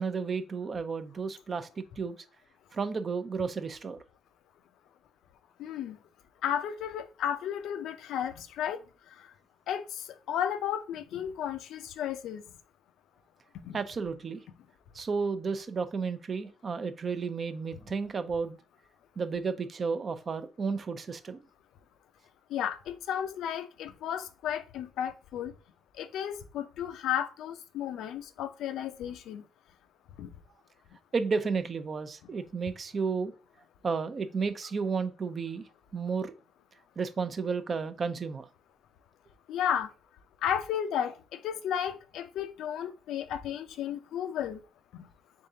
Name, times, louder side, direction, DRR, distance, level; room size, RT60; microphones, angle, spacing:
voice 1, 0.0-2.1 2.7-4.0 13.7-14.4 14.9-18.6 19.2-21.4 31.1-33.3 33.8-35.6 35.9-36.3 37.0-38.5, right 5 dB, 40° right, 0.5 m, -32 dB
voice 2, 5.6-6.0 6.4-8.8 9.2-9.3 9.7-12.4 13.6-13.8 22.5-25.5 26.0-29.4 30.2-30.3 39.5-39.9 40.4-44.6 44.9-45.1, left 9 dB, 80° left, 0.4 m, -33 dB
3.7 x 3.5 x 2.7 m
cardioid pair, 90°, 0 cm